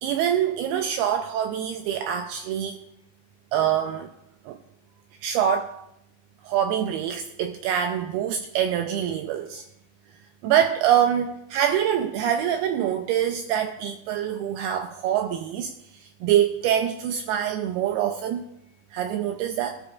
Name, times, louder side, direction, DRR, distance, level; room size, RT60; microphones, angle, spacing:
voice 1, 0.0-2.8 3.5-4.1 4.5-4.6 5.2-5.8 6.4-9.6 10.4-15.7 16.0-18.5 18.9-19.8, right 9 dB, 85° right, 6 dB, 2.3 m, -25 dB
18.0 x 13.0 x 2.4 m, 0.82 s
omnidirectional pair, 5.0 m